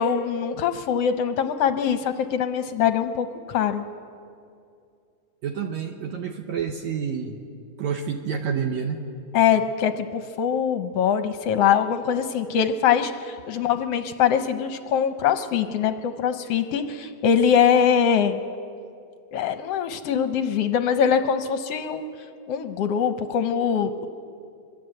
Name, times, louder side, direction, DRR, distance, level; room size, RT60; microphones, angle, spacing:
voice 1, 0.0-3.9 9.3-18.4 19.3-22.0 22.5-24.1, left 8 dB, 70° left, 8 dB, 1.6 m, -23 dB
voice 2, 5.4-7.4 7.8-9.1 13.6-13.7, right 7 dB, 65° right, 3 dB, 2.3 m, -29 dB
26.0 x 22.5 x 7.9 m, 2.4 s
omnidirectional pair, 3.8 m